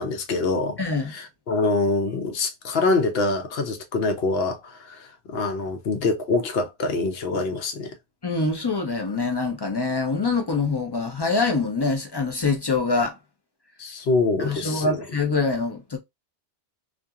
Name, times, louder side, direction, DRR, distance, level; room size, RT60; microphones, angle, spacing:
voice 1, 0.0-0.8 1.1-7.9 13.8-15.0, left 3 dB, 65° left, 0.9 m, -25 dB
voice 2, 0.8-1.1 8.2-13.2 14.4-16.0, left 3 dB, 35° left, 0.4 m, -24 dB
2.7 x 2.5 x 2.3 m
omnidirectional pair, 1.2 m